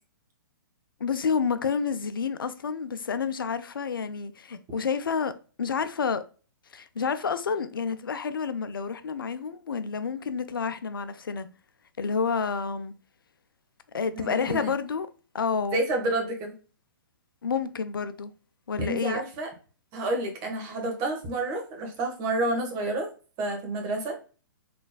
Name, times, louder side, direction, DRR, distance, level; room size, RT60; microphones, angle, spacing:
voice 1, 1.0-5.3 5.6-6.2 6.7-11.5 12.0-12.9 13.9-15.1 15.3-15.8 17.4-18.3 18.7-19.2, left 6 dB, 80° left, 0.4 m, -29 dB
voice 2, 14.1-14.7 15.7-16.5 18.8-19.5 19.9-23.1 23.4-24.1, right 2 dB, 35° right, 1.2 m, -29 dB
3.9 x 3.3 x 2.2 m
hypercardioid pair, 125°, 11 cm